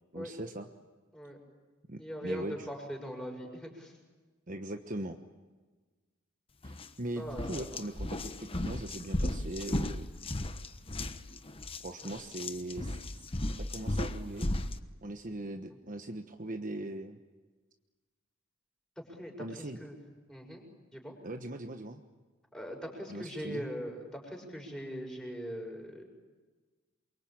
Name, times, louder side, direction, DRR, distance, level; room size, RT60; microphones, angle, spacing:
voice 1, 0.1-0.7 1.9-2.8 4.5-5.2 6.6-10.1 11.8-13.0 13.7-14.5 15.0-17.2 19.4-19.8 21.2-22.0 23.1-23.7, right 1 dB, 40° right, 5 dB, 1.2 m, -40 dB
voice 2, 2.0-3.9 7.2-7.7 19.0-20.0 20.3-20.6 20.9-21.1 22.5-26.0, equal, 5° left, 0 dB, 6.6 m, -41 dB
sound 1, 6.6-6.9 7.3-14.8, left 1 dB, 25° left, 1.1 m, -35 dB
28.0 x 24.0 x 8.8 m, 1.3 s
head